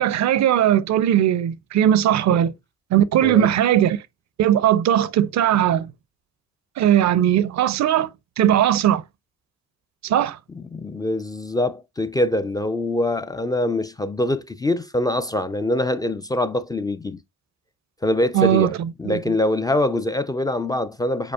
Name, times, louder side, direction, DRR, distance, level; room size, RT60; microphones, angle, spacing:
voice 1, 0.0-2.5 2.9-4.0 4.4-5.9 6.8-8.1 8.4-9.0 10.0-10.4 18.3-18.7 19.1-19.2, right 11 dB, 65° right, 0.5 m, -18 dB
voice 2, 10.6-17.2 18.0-18.7 19.0-21.3, left 1 dB, 15° left, 0.3 m, -24 dB
5.2 x 4.1 x 2.3 m
cardioid pair, 90°, 30 cm